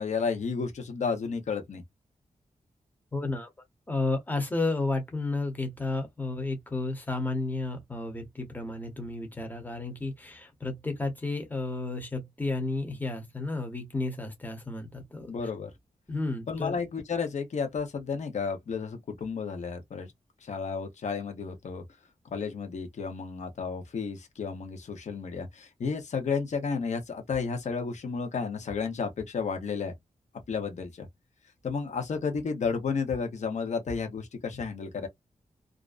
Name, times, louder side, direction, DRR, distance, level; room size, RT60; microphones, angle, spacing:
voice 1, 0.0-1.8 15.3-15.7 16.5-20.1 20.4-21.8 22.3-29.9 30.5-31.1 31.6-35.1, left 5 dB, 60° left, 0.8 m, -32 dB
voice 2, 3.1-3.5 3.9-15.3 16.1-16.7, left 2 dB, 15° left, 0.8 m, -32 dB
2.5 x 2.1 x 2.4 m
wide cardioid pair, 150°, 13 cm